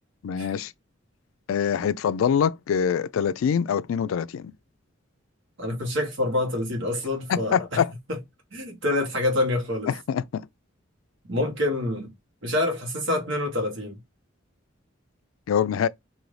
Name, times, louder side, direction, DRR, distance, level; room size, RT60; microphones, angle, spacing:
voice 1, 0.2-0.7 1.5-4.5 7.3-7.9 9.9-10.4 15.5-15.9, left 7 dB, 90° left, 0.3 m, -24 dB
voice 2, 5.6-7.8 8.1-8.2 8.5-9.9 11.3-12.1 12.4-14.0, left 2 dB, 70° right, 1.3 m, -26 dB
2.7 x 2.6 x 3.2 m
head